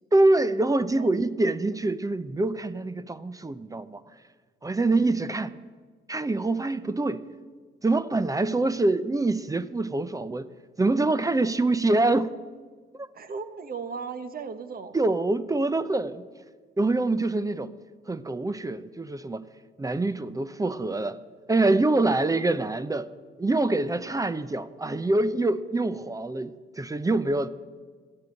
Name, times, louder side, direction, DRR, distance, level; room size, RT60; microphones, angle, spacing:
voice 1, 0.1-4.0 4.6-5.5 6.1-7.2 7.8-10.5 10.8-12.4 13.0-13.1 14.9-16.3 16.8-17.7 18.1-19.4 19.8-21.2 21.5-23.1 23.4-27.5, right 2 dB, 15° right, 0.6 m, -25 dB
voice 2, 0.8-1.3 4.8-5.2 13.1-15.0 22.0-22.2, right 5 dB, 50° right, 1.2 m, -37 dB
12.5 x 8.8 x 9.3 m
cardioid pair, 90°, 20 cm